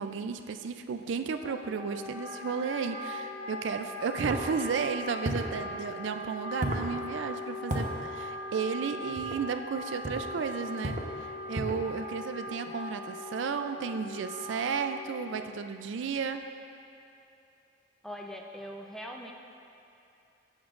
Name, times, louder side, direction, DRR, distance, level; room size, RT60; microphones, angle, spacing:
voice 1, 0.0-16.4, right 6 dB, 65° right, 7 dB, 0.4 m, -33 dB
Wind instrument woodwind instrument, 1.4-15.5, left 1 dB, 75° left, 1.0 m, -40 dB
sound 1, 4.2-4.5 5.2-5.6 6.6-6.9 7.7-7.9 9.2-9.4 10.0-10.3 10.8-11.1 11.5-11.9, right 1 dB, 40° right, 0.9 m, -33 dB
voice 2, 18.0-19.3, equal, ahead, 0 dB, 0.5 m, -41 dB
15.0 x 7.3 x 2.5 m, 2.8 s
head